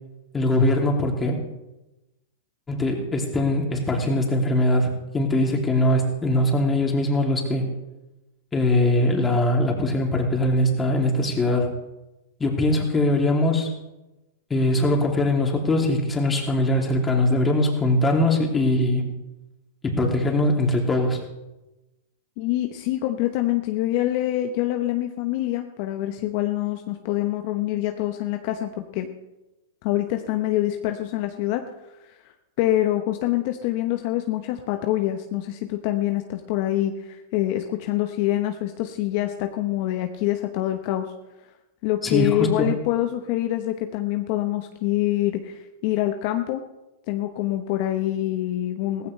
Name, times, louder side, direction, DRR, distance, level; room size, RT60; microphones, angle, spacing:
voice 1, 0.3-1.4 2.7-7.7 8.5-11.7 12.4-13.7 14.5-19.0 19.8-21.2 42.0-42.7, left 1 dB, 15° left, 1 dB, 2.8 m, -21 dB
voice 2, 22.4-29.1 29.8-31.6 32.1-32.2 32.6-41.1 41.8-46.6 47.1-49.1, left 14 dB, 55° left, 6 dB, 1.0 m, -25 dB
17.0 x 15.0 x 3.3 m, 1.0 s
hypercardioid pair, 115°, 0 cm